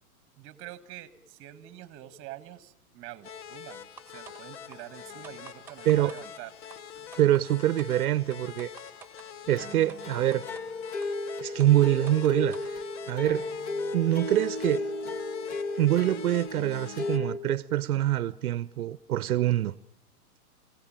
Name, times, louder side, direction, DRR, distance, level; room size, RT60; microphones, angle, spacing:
voice 1, 0.4-6.5, right 14 dB, 30° right, 1.7 m, -46 dB
sound 1, 3.2-17.2, left 8 dB, 50° left, 1.1 m, -45 dB
sound 2, 4.0-4.4 4.7-4.8 5.2-6.2 6.7-6.8 7.1-7.4 7.8-7.9 8.3-9.3 9.9-10.0 10.3-10.6 11.0-11.1 11.6-12.7, right 7 dB, 5° right, 2.6 m, -49 dB
sound 3, 4.7-4.8 5.0-5.3 6.0-6.1 6.4-6.5 7.0-7.5 9.5-17.4, left 2 dB, 20° left, 1.7 m, -35 dB
voice 2, 7.2-8.7 9.5-10.4 11.4-12.8 13.1-13.4 13.9-14.8 15.8-19.8, right 13 dB, 70° right, 0.8 m, -25 dB
26.5 x 17.0 x 8.9 m
hypercardioid pair, 140°, 44 cm